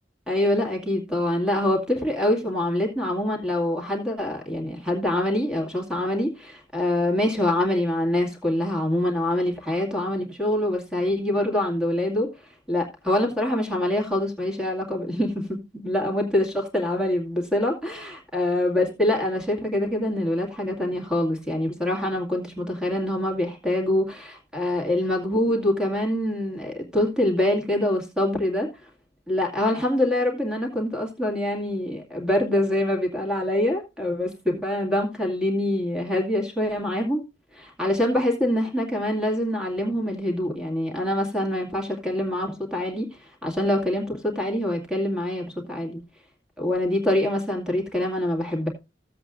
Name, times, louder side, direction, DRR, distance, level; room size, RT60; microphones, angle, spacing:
voice 1, 0.3-12.3 12.7-28.7 29.3-37.2 37.5-46.0 46.6-48.7, left 1 dB, 5° right, 2.2 m, -25 dB
15.0 x 7.9 x 2.5 m
head